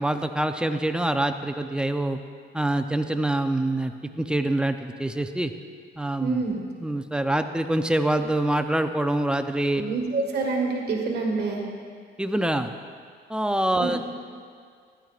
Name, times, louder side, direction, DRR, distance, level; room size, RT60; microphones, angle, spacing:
voice 1, 0.0-2.2 2.5-5.5 6.0-6.4 6.8-9.8 12.2-12.7 13.3-14.0, right 1 dB, 5° right, 7 dB, 0.6 m, -25 dB
voice 2, 6.2-6.6 9.8-11.6 13.8-14.0, right 4 dB, 55° right, 0 dB, 1.8 m, -27 dB
15.0 x 10.5 x 2.5 m, 2.1 s
cardioid pair, 90°, 20 cm